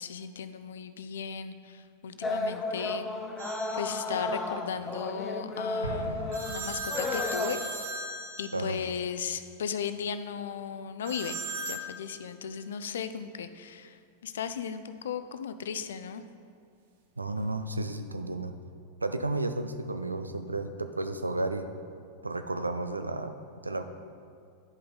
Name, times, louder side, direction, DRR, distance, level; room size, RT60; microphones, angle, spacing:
voice 1, 0.0-3.1 3.8-7.7 8.4-11.4 11.7-16.2, left 7 dB, 65° left, 11 dB, 0.4 m, -36 dB
sound 1, 2.2-7.5, left 2 dB, 20° left, 0.6 m, -33 dB
sound 2, 3.4-4.1 6.3-9.0 11.1-11.9, right 1 dB, 60° right, 1.1 m, -37 dB
Explosion, 5.8-7.4, equal, 80° left, 0.8 m, -40 dB
voice 2, 17.2-18.5 19.0-21.7 22.2-23.3 23.6-23.8, right 2 dB, 80° right, 9 dB, 0.4 m, -32 dB
10.5 x 5.3 x 4.0 m, 2.3 s
figure-of-eight pair, 90°, 0 cm